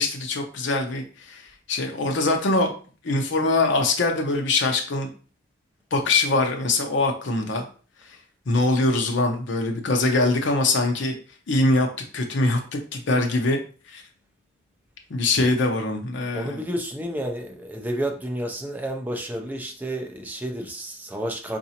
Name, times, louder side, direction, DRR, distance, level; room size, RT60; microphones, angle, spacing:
voice 1, 0.0-1.4 1.7-2.7 3.0-5.1 5.9-7.6 8.5-11.2 11.5-11.9 12.1-13.6 13.9-14.0 15.1-16.6, left 2 dB, 65° left, 0.7 m, -23 dB
voice 2, 16.3-21.6, right 1 dB, 10° right, 0.5 m, -30 dB
4.1 x 2.5 x 2.8 m
head